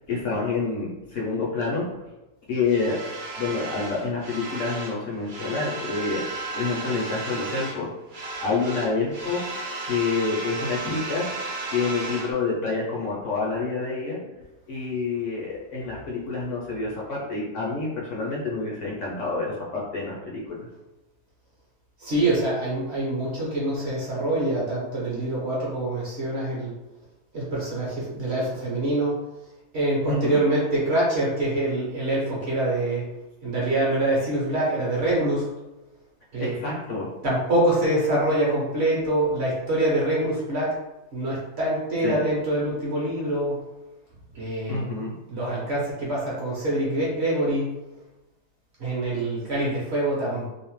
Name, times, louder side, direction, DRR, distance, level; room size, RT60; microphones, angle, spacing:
voice 1, 0.1-1.8 2.5-3.0 3.4-6.2 6.5-7.9 8.4-9.4 9.9-11.2 11.7-14.2 14.7-20.6 30.1-30.4 36.4-37.1 42.0-42.2 44.7-45.1, left 4 dB, 65° left, -4 dB, 0.8 m, -27 dB
sound 1, 2.6-5.0 5.2-7.8 8.1-12.3, right 3 dB, 80° right, 0.4 m, -34 dB
voice 2, 22.0-26.7 27.3-29.2 29.7-33.1 33.4-35.5 36.3-36.6 37.2-40.8 41.1-43.6 44.3-44.8 45.3-47.8 48.8-50.5, right 1 dB, 55° right, -6 dB, 0.8 m, -25 dB
2.7 x 2.0 x 3.0 m, 0.99 s
omnidirectional pair, 1.6 m